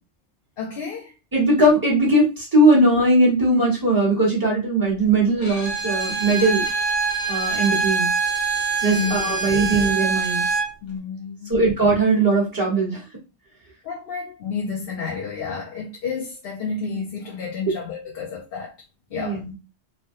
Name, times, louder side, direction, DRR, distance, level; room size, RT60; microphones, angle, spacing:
voice 1, 0.6-1.1 8.8-9.6 10.8-11.6 12.7-12.8 13.8-18.7 19.1-19.4, left 5 dB, 65° left, 0.8 m, -31 dB
voice 2, 1.3-6.7 7.3-8.1 8.8-10.5 11.5-13.0 19.2-19.5, right 2 dB, 20° right, 1.3 m, -19 dB
Bowed string instrument, 5.4-10.7, right 5 dB, 85° left, 1.3 m, -24 dB
3.3 x 2.2 x 2.6 m
omnidirectional pair, 1.2 m